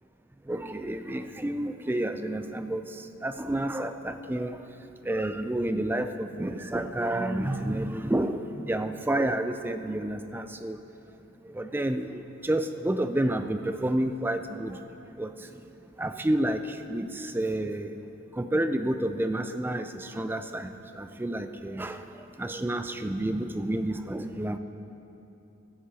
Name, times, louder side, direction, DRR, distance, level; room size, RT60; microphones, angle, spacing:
voice 1, 0.5-2.8 3.2-4.6 5.1-8.4 8.7-10.8 11.6-14.8 15.2-15.3 16.0-16.6 16.9-17.1 17.3-17.9 18.4-19.9 20.2-20.7 21.0-22.0 22.4-24.6, right 1 dB, 10° right, 8 dB, 0.4 m, -29 dB
16.0 x 15.0 x 2.9 m, 2.9 s
head